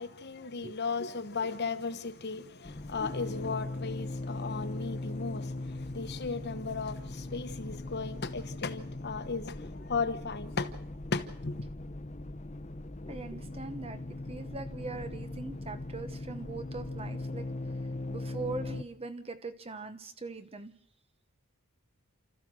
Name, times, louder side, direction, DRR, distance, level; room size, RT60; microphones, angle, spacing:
voice 1, 0.0-10.7 11.1-11.7, left 4 dB, 50° left, 1.2 m, -36 dB
sound 1, 2.6-18.8, left 2 dB, 30° left, 0.9 m, -39 dB
voice 2, 13.1-17.5 18.1-20.7, right 3 dB, 25° right, 1.0 m, -41 dB
29.5 x 14.0 x 6.3 m
head